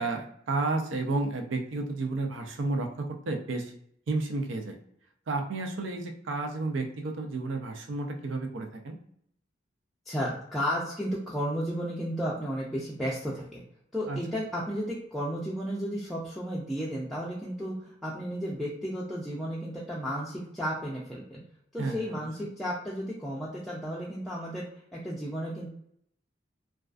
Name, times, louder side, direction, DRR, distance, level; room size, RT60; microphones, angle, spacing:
voice 1, 0.0-3.7 4.1-4.7 5.3-9.0 14.1-14.2 21.8-22.5, right 3 dB, 85° right, 4 dB, 0.4 m, -32 dB
voice 2, 10.1-13.6 13.9-21.4 21.7-24.6 24.9-25.7, equal, ahead, -7 dB, 0.3 m, -33 dB
2.3 x 2.3 x 2.4 m, 0.69 s
head